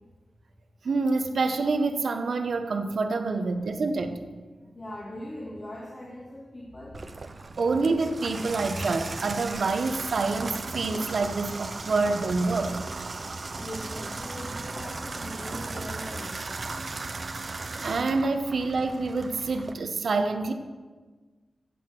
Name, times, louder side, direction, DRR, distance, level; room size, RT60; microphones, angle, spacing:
voice 1, 0.8-4.2 7.6-12.8 17.8-20.5, right 3 dB, 65° right, 7 dB, 1.2 m, -27 dB
voice 2, 4.6-7.1 13.6-16.6, left 1 dB, 35° left, -5 dB, 2.6 m, -40 dB
Water tap faucet / Bathtub (filling or washing), 6.9-19.7, right 3 dB, 45° right, 0.8 m, -36 dB
15.5 x 8.3 x 6.2 m, 1.4 s
wide cardioid pair, 105°, 0 cm